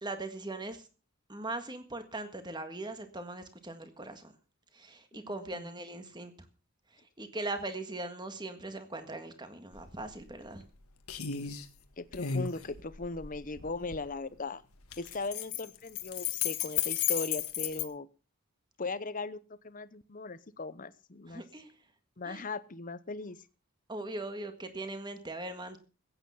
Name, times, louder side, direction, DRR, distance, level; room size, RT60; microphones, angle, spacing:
voice 1, 0.0-0.8 1.3-4.3 4.7-6.3 7.2-10.6 21.3-21.7 22.2-22.4 23.9-25.8, right 2 dB, 20° right, 8 dB, 1.7 m, -40 dB
voice 2, 5.1-5.8 12.0-14.6 15.0-18.1 18.8-21.4 22.2-23.4, left 3 dB, 40° left, 15 dB, 0.8 m, -39 dB
sound 1, 9.7-9.9 10.3-10.8 11.1-11.7 12.1-14.1 14.8-17.9, left 9 dB, 90° left, 1.6 m, -34 dB
15.5 x 9.1 x 5.6 m, 0.36 s
head